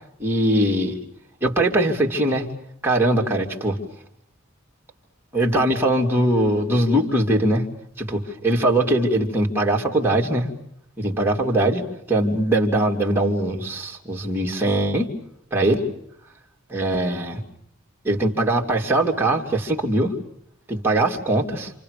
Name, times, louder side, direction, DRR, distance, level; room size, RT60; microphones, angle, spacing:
voice 1, 0.2-1.0 1.4-2.5 2.8-3.8 5.3-7.7 8.0-10.5 11.0-15.1 15.5-15.8 16.7-17.4 18.0-20.1 20.7-21.7, right 1 dB, 10° right, -1 dB, 3.3 m, -21 dB
28.5 x 28.0 x 6.8 m, 0.71 s
head